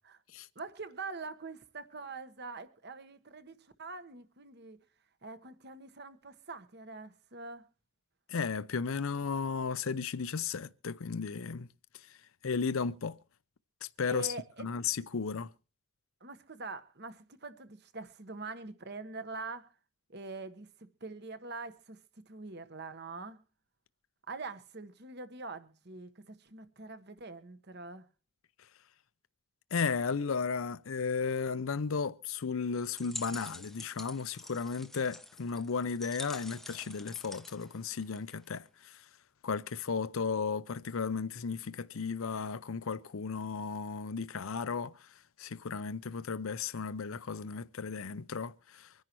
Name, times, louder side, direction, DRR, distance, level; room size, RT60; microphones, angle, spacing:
voice 1, 0.5-4.8 5.2-7.7 14.1-14.7 16.2-19.7 20.1-23.4 24.3-28.1, right 3 dB, 50° right, 1.3 m, -44 dB
voice 2, 8.3-11.7 11.9-12.2 12.4-13.2 13.8-15.5 29.7-39.1 39.4-48.9, left 5 dB, 70° left, 0.6 m, -35 dB
sound 1, 32.8-38.5, left 1 dB, ahead, 0.6 m, -47 dB
25.0 x 10.5 x 3.1 m
head